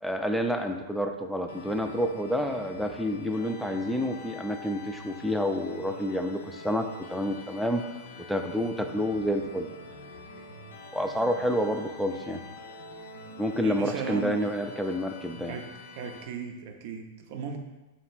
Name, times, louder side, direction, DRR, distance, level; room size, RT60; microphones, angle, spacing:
voice 1, 0.0-7.8 8.3-9.7 10.9-12.4 13.4-15.6, equal, ahead, 4 dB, 0.4 m, -29 dB
sound 1, 1.5-16.2, left 2 dB, 70° left, 0.5 m, -45 dB
voice 2, 13.5-14.5 15.5-17.6, right 6 dB, 55° right, 4 dB, 0.6 m, -37 dB
3.2 x 2.9 x 4.3 m, 1.1 s
hypercardioid pair, 105°, 0 cm